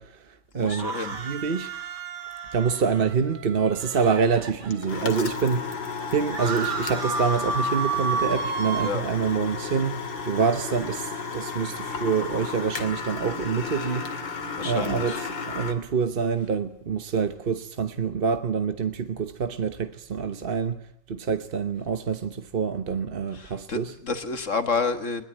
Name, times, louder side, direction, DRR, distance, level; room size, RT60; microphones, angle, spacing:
voice 1, 0.0-1.7 2.5-5.8 6.1-14.1 14.6-20.8 21.1-23.9, right 6 dB, 40° right, 0.9 m, -26 dB
voice 2, 0.6-1.1 8.8-9.0 14.6-15.2 23.3-25.3, left 4 dB, 45° left, 1.7 m, -29 dB
sound 1, 0.6-5.1 5.6-5.7 5.8-8.9, right 4 dB, 65° right, 3.0 m, -31 dB
sound 2, 4.7-15.7, left 5 dB, 90° left, 3.0 m, -33 dB
21.5 x 20.5 x 9.1 m
omnidirectional pair, 2.0 m